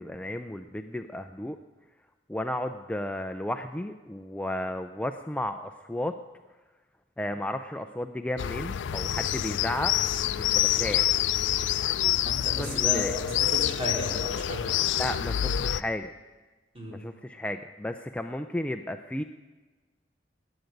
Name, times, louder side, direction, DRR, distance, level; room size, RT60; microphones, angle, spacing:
voice 1, 0.0-1.6 2.3-6.1 7.2-9.9 10.5-11.0 12.5-13.1 15.0-16.1 16.9-19.2, left 1 dB, 5° left, 7 dB, 0.4 m, -33 dB
sound 1, 8.4-15.8, left 12 dB, 80° left, 0.4 m, -27 dB
voice 2, 12.2-14.8 16.7-17.0, equal, 35° right, -2 dB, 3.7 m, -34 dB
19.5 x 9.1 x 5.2 m, 1.3 s
head